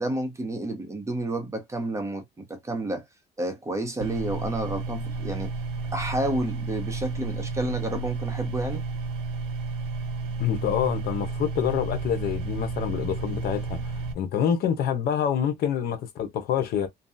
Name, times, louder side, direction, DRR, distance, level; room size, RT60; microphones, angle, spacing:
voice 1, 0.0-2.2 2.5-3.0 3.4-5.5 5.9-8.8, right 1 dB, 15° right, 0.8 m, -30 dB
sound 1, 4.0-14.1, right 3 dB, 85° right, 0.6 m, -32 dB
voice 2, 10.4-16.9, left 8 dB, 65° left, 0.7 m, -27 dB
2.7 x 2.2 x 2.5 m
cardioid pair, 110°, 17 cm